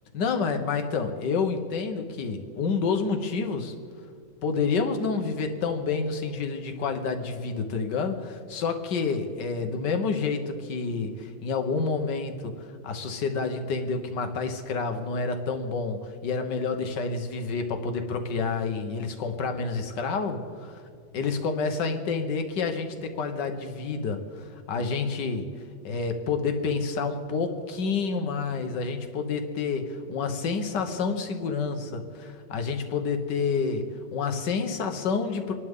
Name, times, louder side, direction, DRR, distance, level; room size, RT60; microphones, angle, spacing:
voice 1, 0.1-3.7 4.4-12.5 12.8-20.7 21.1-25.5 25.8-35.5, left 4 dB, 90° left, 6 dB, 1.8 m, -29 dB
26.5 x 11.5 x 3.7 m, 2.3 s
omnidirectional pair, 1.8 m